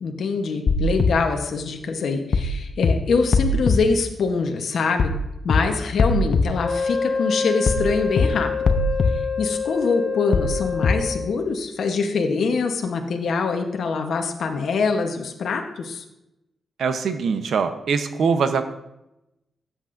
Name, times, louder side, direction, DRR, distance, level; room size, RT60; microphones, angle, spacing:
voice 1, 0.0-5.1 5.4-8.8 9.1-16.0, left 4 dB, 70° left, 4 dB, 0.9 m, -24 dB
sound 1, 0.7-1.1 2.3-2.5 2.8-2.9 3.3-3.8 5.0-5.2 5.5-5.6 6.0-6.4 7.7-7.9 8.2-8.3 8.7-9.1 10.3-10.5 10.8-10.9, left 3 dB, 55° left, 0.6 m, -19 dB
Wind instrument woodwind instrument, 6.6-11.4, left 5 dB, 35° left, 1.4 m, -27 dB
voice 2, 16.8-18.7, right 5 dB, 80° right, 9 dB, 0.7 m, -22 dB
13.5 x 8.1 x 2.5 m, 0.90 s
wide cardioid pair, 135°, 0 cm